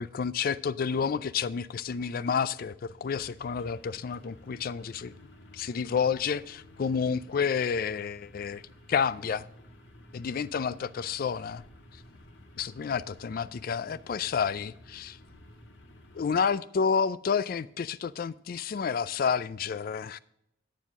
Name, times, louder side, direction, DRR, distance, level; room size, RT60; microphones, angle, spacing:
voice 1, 0.0-5.1 5.5-8.6 8.9-9.4 10.1-11.6 12.6-15.2 16.1-20.2, left 6 dB, 50° left, 0.4 m, -30 dB
sound 1, 2.7-16.4, left 1 dB, 75° left, 1.7 m, -53 dB
9.7 x 9.1 x 3.6 m
head